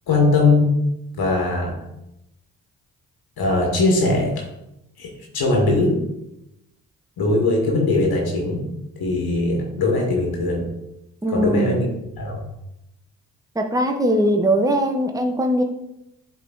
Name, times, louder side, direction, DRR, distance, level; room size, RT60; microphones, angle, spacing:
voice 1, 0.1-0.8 1.2-1.8 3.4-4.4 5.0-6.0 7.2-8.6 9.0-10.7 11.3-11.8 12.2-12.4, left 2 dB, 60° left, 0 dB, 2.0 m, -20 dB
voice 2, 11.2-11.9 13.5-15.6, equal, 10° right, 3 dB, 1.0 m, -20 dB
8.4 x 3.8 x 4.0 m, 0.87 s
hypercardioid pair, 40°, 41 cm